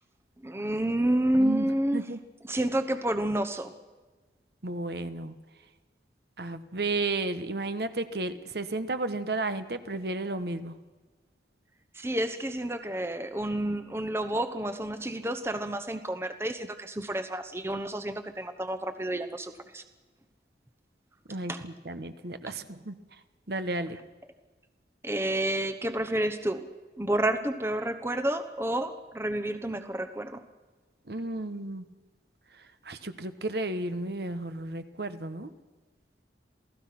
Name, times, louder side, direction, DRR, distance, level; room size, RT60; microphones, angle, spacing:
voice 1, 0.4-2.0 2.4-3.7 11.9-19.8 21.5-21.6 25.0-26.7 27.0-30.4, right 1 dB, 15° right, 9 dB, 1.0 m, -29 dB
voice 2, 1.4-2.2 4.6-5.3 6.4-10.7 21.3-22.9 23.5-24.0 31.1-31.9 32.5-35.5, right 2 dB, 65° right, 10 dB, 1.3 m, -33 dB
28.0 x 17.5 x 6.0 m, 1.3 s
head